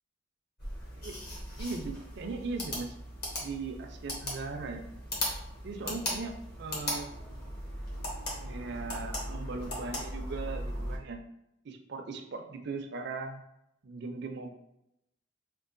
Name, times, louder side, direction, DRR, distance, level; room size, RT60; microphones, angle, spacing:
sound 1, 0.6-11.0, left 1 dB, 45° left, 1.0 m, -38 dB
voice 1, 1.6-2.9 3.4-4.9 5.6-6.3 6.6-7.2 8.4-11.2 11.6-13.4 13.8-14.6, right 3 dB, 50° right, 5 dB, 0.4 m, -39 dB
4.5 x 2.3 x 2.5 m, 0.82 s
head